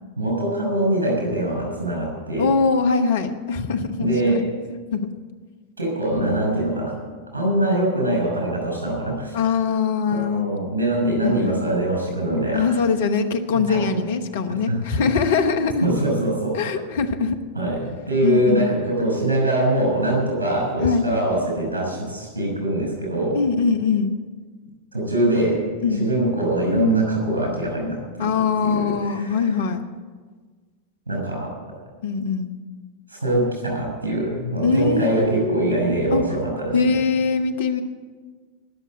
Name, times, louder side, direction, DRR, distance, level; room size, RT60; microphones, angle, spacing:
voice 1, 0.2-2.5 4.0-4.5 5.8-7.0 7.3-9.4 10.1-12.8 13.5-14.1 14.7-15.0 15.8-16.6 17.5-23.4 24.9-28.3 28.6-29.5 31.1-31.5 33.1-36.8, right 1 dB, 75° right, 0 dB, 5.9 m, -23 dB
voice 2, 2.4-4.1 4.9-5.1 9.3-10.5 11.2-11.6 12.5-15.9 16.5-17.4 18.2-18.7 20.8-21.1 23.3-24.1 25.8-26.1 28.2-29.8 32.0-32.5 34.6-36.2 36.7-37.8, left 5 dB, 55° left, 8 dB, 1.1 m, -22 dB
19.5 x 7.1 x 8.5 m, 1.5 s
figure-of-eight pair, 90°, 0 cm